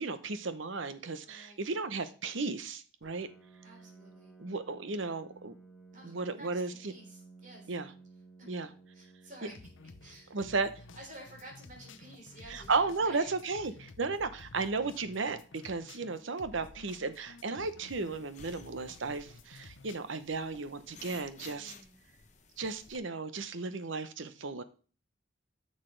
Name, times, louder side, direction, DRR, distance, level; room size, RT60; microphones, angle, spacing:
voice 1, 0.0-3.3 4.4-5.5 6.0-6.7 7.7-7.9 8.5-8.7 10.3-10.7 12.5-21.7 22.6-24.6, right 4 dB, 75° right, 11 dB, 0.9 m, -34 dB
voice 2, 1.2-1.6 3.6-4.3 5.9-7.7 8.4-8.5 8.9-9.7 10.0-10.4 11.0-13.3 21.5-22.0, right 1 dB, 40° right, 0 dB, 3.8 m, -52 dB
Piano, 3.0-18.4, right 3 dB, 5° left, 1.3 m, -58 dB
sound 1, 9.5-20.0, left 3 dB, 80° left, 0.8 m, -53 dB
sound 2, 17.9-23.0, left 5 dB, 35° left, 1.1 m, -55 dB
10.0 x 6.6 x 3.3 m, 0.37 s
head